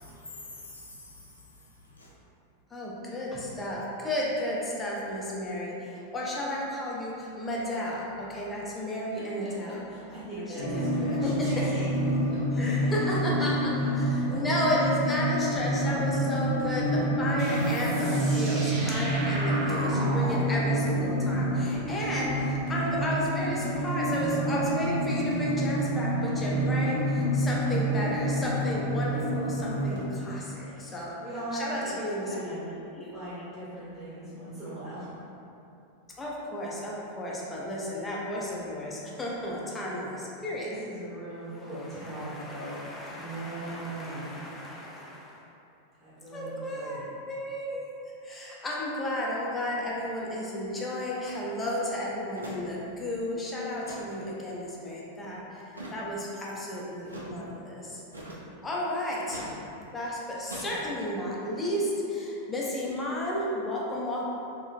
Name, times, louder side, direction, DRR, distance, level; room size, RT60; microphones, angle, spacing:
voice 1, 0.0-2.1, left 2 dB, 80° left, -4 dB, 0.5 m, -47 dB
voice 2, 2.7-5.7 6.1-9.8 10.3-10.8 11.2-11.6 12.6-31.2 31.5-33.1 36.2-40.2 40.4-40.7 41.8-45.3 46.3-47.8 48.2-55.4 55.9-58.0 58.6-59.4 59.9-64.3, left 1 dB, 15° left, -5 dB, 0.5 m, -33 dB
voice 3, 9.1-11.9 12.3-13.0 13.6-13.9 30.6-30.8 31.2-32.6 33.1-35.1 40.6-42.8 43.1-44.3 46.0-47.1, right 1 dB, 5° right, -15 dB, 1.0 m, -39 dB
sound 1, 10.6-30.0, right 1 dB, 50° left, 0.8 m, -28 dB
sound 2, 17.4-22.7, right 1 dB, 30° right, 0.8 m, -37 dB
sound 3, 51.2-51.4 52.4-52.6 52.9-53.0 53.7-54.2 55.7-56.1 57.1-57.3 58.1-58.5 59.3-59.6 60.5-60.7, right 1 dB, 80° right, 0.4 m, -42 dB
2.8 x 2.5 x 2.4 m, 2.8 s
figure-of-eight pair, 90°, 0 cm